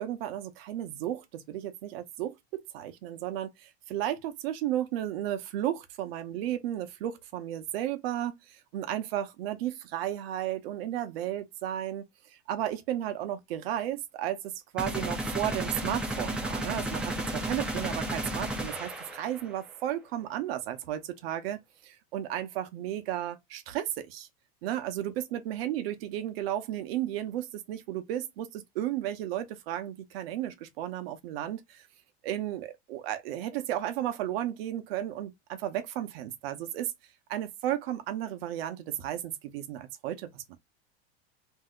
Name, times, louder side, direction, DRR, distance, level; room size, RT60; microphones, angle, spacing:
voice 1, 0.0-17.1 17.5-24.3 24.6-31.8 32.2-36.9 37.3-40.6, right 12 dB, 70° right, 0.7 m, -34 dB
sound 1, 14.8-19.5, right 1 dB, 5° right, 0.3 m, -33 dB
2.7 x 2.1 x 3.6 m
supercardioid pair, 160°, 31 cm